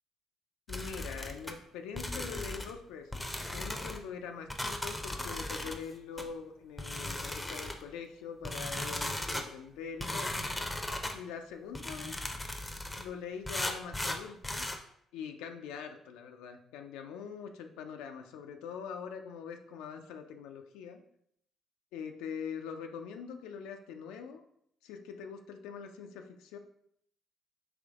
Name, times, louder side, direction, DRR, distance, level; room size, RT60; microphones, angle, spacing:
voice 1, 0.7-10.4 11.1-12.2 13.0-14.6 15.1-21.0 21.9-24.4 24.8-26.6, left 6 dB, 75° left, 5 dB, 0.3 m, -43 dB
sound 1, 0.7-1.5 2.0-2.8 3.1-4.0 4.5-5.8 6.2-6.3 6.8-7.8 8.4-9.5 10.0-11.2 11.7-13.1 13.5-14.8, left 1 dB, 15° left, 0.6 m, -37 dB
3.4 x 3.2 x 3.5 m, 0.70 s
hypercardioid pair, 50°, 0 cm